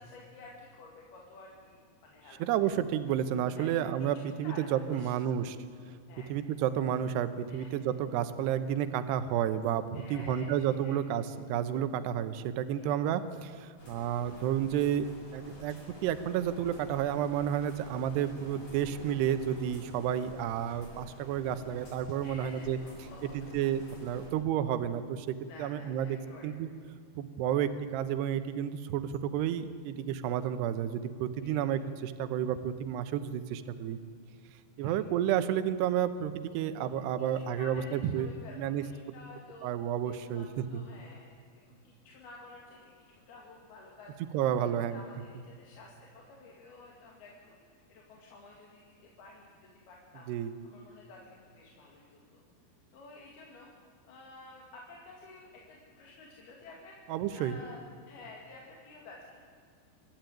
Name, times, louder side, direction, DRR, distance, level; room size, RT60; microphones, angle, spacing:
voice 1, 0.0-2.7 3.6-3.7 4.0-4.6 4.9-5.1 6.1-6.4 7.5-7.7 9.9-10.5 10.8-11.0 12.8-12.9 22.2-23.7 25.5-26.5 31.4-31.6 34.8-34.9 37.2-39.7 40.2-41.3 41.7-44.1 44.6-50.3 50.6-52.4 52.9-53.7 54.1-57.0 57.3-59.4, left 3 dB, 65° left, -2 dB, 3.9 m, -52 dB
voice 2, 2.4-5.6 6.3-22.8 23.3-26.2 26.4-26.7 27.1-34.0 34.8-38.3 38.6-38.8 39.6-40.8 44.3-45.0 50.3-50.6 57.1-57.6, right 10 dB, 75° right, 11 dB, 2.9 m, -31 dB
sound 1, 13.8-24.3, equal, 35° left, 7.6 m, -50 dB
26.0 x 13.0 x 9.3 m, 2.1 s
omnidirectional pair, 5.2 m